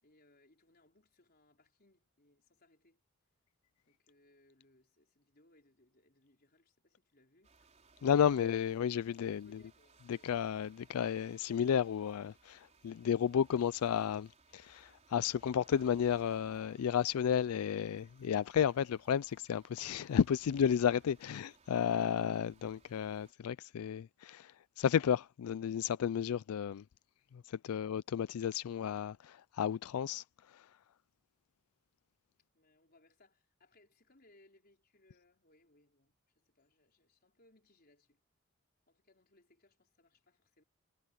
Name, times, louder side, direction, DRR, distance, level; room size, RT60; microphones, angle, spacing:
voice 1, 0.0-3.0 3.8-7.6 9.3-10.4 32.5-38.2 38.9-40.6, left 2 dB, 45° left, 4.6 m, -68 dB
sound 1, 7.4-23.3, right 3 dB, 30° right, 4.6 m, -65 dB
voice 2, 8.0-9.5 10.1-26.8 27.5-30.2 30.5-30.7, left 8 dB, 85° left, 0.4 m, -32 dB
head